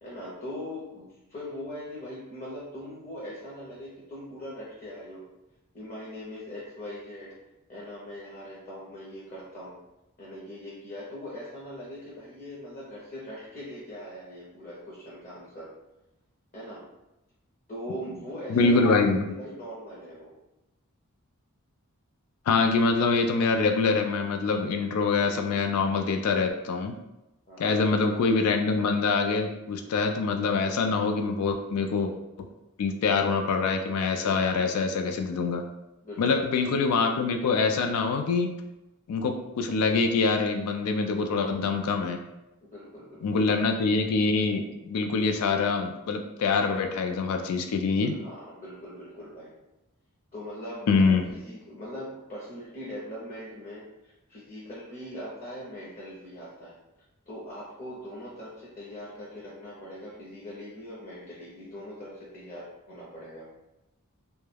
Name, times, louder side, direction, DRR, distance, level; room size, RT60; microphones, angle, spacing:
voice 1, 0.0-5.2 5.7-7.4 7.7-9.8 10.2-15.7 16.5-16.8 17.7-20.3 27.5-27.7 36.0-36.4 42.7-43.6 48.0-49.5 50.3-56.8 57.3-63.5, equal, 35° left, -7 dB, 0.6 m, -41 dB
voice 2, 18.5-19.2 22.5-26.9 27.6-32.1 32.4-32.5 32.8-35.6 36.2-38.6 39.1-42.2 43.2-48.2 50.9-51.3, left 4 dB, 80° left, 6 dB, 0.3 m, -25 dB
2.2 x 2.1 x 3.2 m, 0.94 s
head